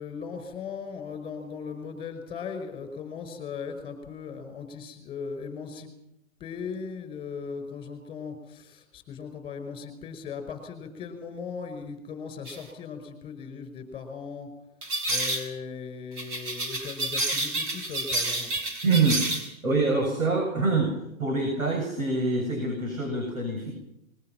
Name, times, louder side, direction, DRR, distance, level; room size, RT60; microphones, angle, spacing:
voice 1, 0.0-5.9 6.4-14.5 15.1-18.5, left 6 dB, 15° left, 8 dB, 5.1 m, -38 dB
sound 1, 12.5-12.6 14.8-15.5 16.2-19.5, right 2 dB, 40° right, 5.6 m, -29 dB
voice 2, 18.8-19.2 19.6-20.9 21.2-23.7, right 3 dB, 90° right, 1 dB, 7.4 m, -25 dB
25.0 x 22.0 x 5.9 m, 0.82 s
hypercardioid pair, 140°, 40 cm